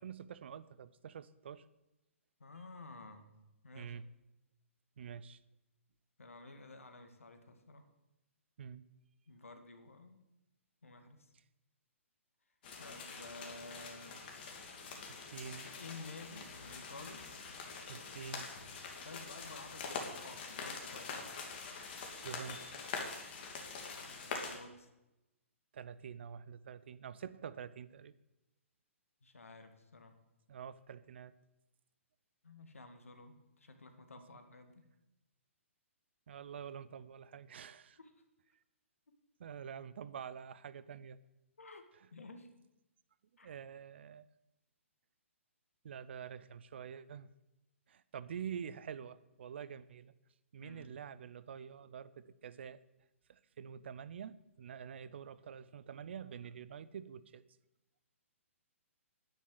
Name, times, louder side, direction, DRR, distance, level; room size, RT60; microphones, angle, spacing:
voice 1, 0.0-1.7 3.7-4.1 5.0-5.4 8.6-8.9 15.1-15.7 17.9-18.5 22.2-22.9 25.7-28.1 30.5-31.3 36.3-38.0 39.4-41.2 43.4-44.3 45.8-47.3 47.9-50.1 50.5-52.8 53.3-57.4, right 7 dB, 55° right, 16 dB, 0.7 m, -47 dB
voice 2, 2.4-3.3 3.6-3.9 6.2-7.9 9.3-10.2 10.8-11.3 12.8-14.2 15.8-17.3 19.0-21.3 24.0-24.9 29.2-30.2 32.4-34.8 38.0-38.1 41.6-42.5 43.4-43.5 50.6-50.9, left 3 dB, 75° left, 7 dB, 1.9 m, -52 dB
sound 1, 12.6-24.6, left 4 dB, 45° left, 2.6 m, -45 dB
10.0 x 9.3 x 7.9 m, 0.96 s
figure-of-eight pair, 125°, 7 cm